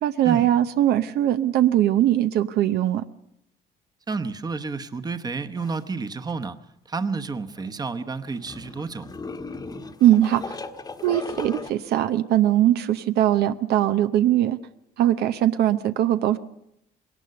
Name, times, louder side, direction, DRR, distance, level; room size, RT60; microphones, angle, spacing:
voice 1, 0.0-3.0 10.0-10.6 11.0-14.6 15.0-16.4, right 12 dB, 70° right, 11 dB, 0.7 m, -21 dB
voice 2, 4.1-6.6 6.9-9.1, right 4 dB, 25° right, 10 dB, 1.0 m, -30 dB
sound 1, 5.6-5.8 6.3-6.4 7.6-11.7, left 3 dB, 25° left, 1.2 m, -37 dB
20.5 x 18.5 x 6.8 m, 0.79 s
cardioid pair, 110°, 17 cm